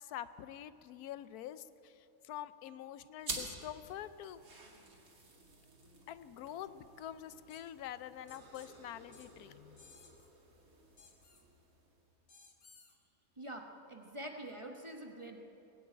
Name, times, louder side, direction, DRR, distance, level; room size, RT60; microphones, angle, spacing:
voice 1, 0.0-4.4 6.1-9.8, left 11 dB, 85° left, 14 dB, 1.1 m, -46 dB
sound 1, 3.2-12.2, right 3 dB, 70° right, 2.5 m, -50 dB
sound 2, 7.5-7.6 8.3-8.7 9.1-9.3 9.8-10.3 11.0-11.4 12.3-12.9, left 4 dB, 50° left, 1.8 m, -59 dB
voice 2, 13.4-15.5, right 1 dB, 20° right, 2 dB, 1.1 m, -46 dB
20.5 x 7.8 x 8.9 m, 2.9 s
omnidirectional pair, 1.6 m